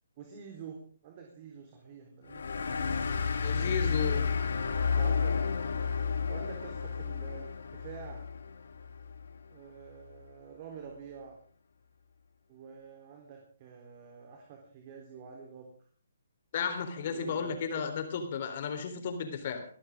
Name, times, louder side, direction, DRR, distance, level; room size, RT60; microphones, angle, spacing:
voice 1, 0.2-3.2 4.0-4.1 5.0-5.5 6.3-8.2 9.5-11.4 12.5-15.7 17.0-17.8, right 6 dB, 35° right, 2 dB, 3.8 m, -48 dB
sound 1, 2.3-9.4, left 5 dB, 65° left, 2.1 m, -31 dB
voice 2, 3.4-4.2 16.5-19.6, left 6 dB, 45° left, 6 dB, 4.0 m, -33 dB
24.0 x 13.5 x 3.8 m, 0.44 s
figure-of-eight pair, 140°, 0 cm